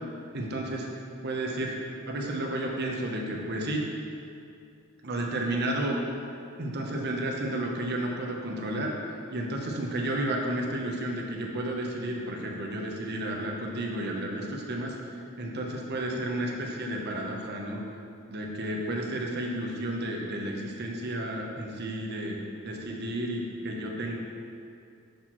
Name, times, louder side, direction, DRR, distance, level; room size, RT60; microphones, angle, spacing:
voice 1, 0.3-0.9 1.2-1.8 2.1-3.8 5.0-6.0 6.6-8.9 9.3-14.9 15.4-17.8 18.3-22.4 22.6-24.2, right 1 dB, 50° right, 0 dB, 0.8 m, -32 dB
6.5 x 5.8 x 3.0 m, 2.4 s
head